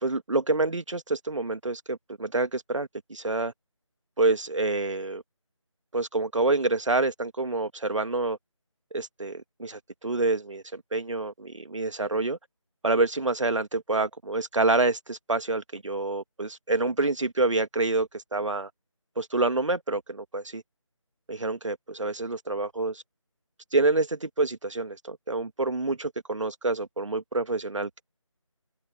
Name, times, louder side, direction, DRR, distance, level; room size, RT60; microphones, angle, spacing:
voice 1, 0.0-3.5 4.2-5.2 5.9-8.4 8.9-12.4 12.8-18.7 19.2-20.6 21.3-23.0 23.7-28.0, right 3 dB, 65° right, 2.2 m, -27 dB
open air
figure-of-eight pair, 170°, 17 cm